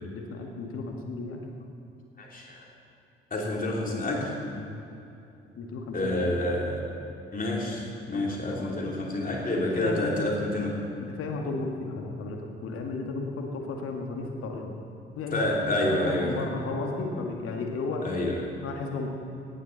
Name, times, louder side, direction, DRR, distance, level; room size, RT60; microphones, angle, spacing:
voice 1, 0.0-1.4 4.5-4.7 5.6-6.0 8.1-8.3 8.5-8.9 9.5-10.1 11.2-14.7 15.2-15.4 15.8-18.1 18.6-19.1, left 3 dB, 50° left, 2 dB, 2.0 m, -34 dB
voice 2, 2.2-2.7 3.3-4.3 5.9-6.8 7.3-10.8 15.3-16.5 18.0-18.4, left 1 dB, 30° left, -2 dB, 3.2 m, -28 dB
17.5 x 11.0 x 4.1 m, 2.8 s
figure-of-eight pair, 50°, 29 cm